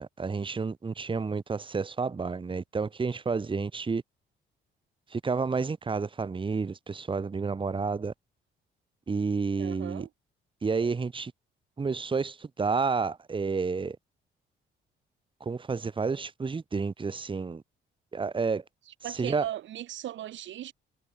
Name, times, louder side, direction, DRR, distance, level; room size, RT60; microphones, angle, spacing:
voice 1, 0.0-4.0 5.1-8.1 9.1-10.1 10.6-11.3 11.8-14.0 15.4-17.6 18.1-18.6 19.1-19.5, right 4 dB, 25° right, 1.2 m, -30 dB
voice 2, 9.6-10.1 19.0-20.7, right 12 dB, 70° right, 1.1 m, -37 dB
cardioid pair, 90°, 20 cm